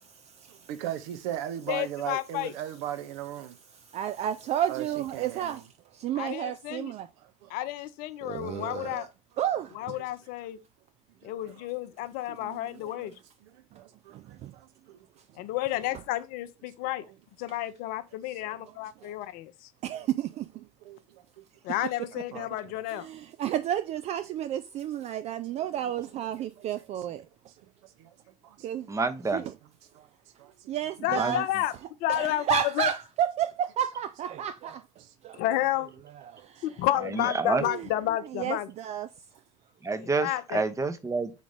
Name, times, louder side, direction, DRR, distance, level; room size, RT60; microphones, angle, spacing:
voice 1, 0.5-3.6 4.7-5.7 7.2-7.5 11.2-11.7 13.7-15.1 18.4-19.1 20.8-21.4 22.3-22.5 25.8-25.9 26.4-26.7 28.0-28.1 28.4-28.7 29.9-30.1 30.4-30.7 35.0-35.1, right 11 dB, 60° right, 0.7 m, -39 dB
voice 2, 1.7-2.5 6.2-6.9 7.5-9.1 9.7-10.6 11.2-13.1 15.4-17.0 17.4-19.7 21.6-23.1 31.0-31.7 32.0-32.9 35.4-35.9 36.6-38.7 40.0-40.6, left 14 dB, 50° left, 0.6 m, -31 dB
voice 3, 3.9-5.6 5.9-7.1 8.2-9.1 9.4-9.9 12.4-12.9 13.7-13.8 14.1-14.5 19.8-20.5 22.9-27.2 28.6-28.9 29.3-29.4 30.7-31.5 32.1-34.5 36.3-36.6 37.5-37.8 38.3-39.1, right 10 dB, 35° right, 0.4 m, -31 dB
voice 4, 28.9-29.4 31.1-31.4 37.0-37.7 39.8-41.3, right 3 dB, 15° right, 0.8 m, -28 dB
5.0 x 3.9 x 4.9 m
figure-of-eight pair, 65°, 18 cm